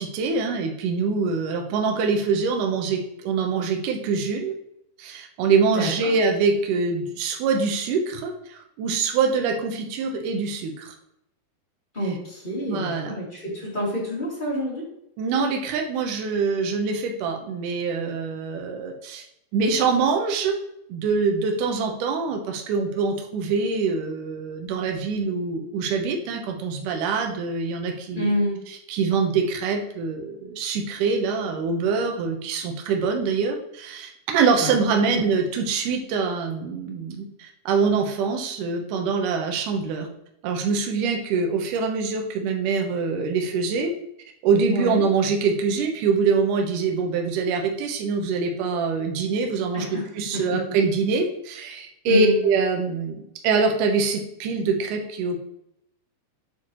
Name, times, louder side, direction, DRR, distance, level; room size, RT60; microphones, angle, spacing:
voice 1, 0.0-4.5 5.0-10.9 12.7-13.2 15.2-19.2 19.5-20.5 20.9-28.3 28.9-40.1 40.4-43.9 44.4-55.4, right 4 dB, 70° right, 3 dB, 2.1 m, -24 dB
voice 2, 5.7-6.1 11.9-14.8 28.1-28.6 34.6-34.7 44.7-45.0 49.7-50.0 50.3-50.6 52.1-52.4, equal, 25° left, -6 dB, 1.2 m, -27 dB
8.0 x 4.7 x 2.9 m, 0.78 s
omnidirectional pair, 4.5 m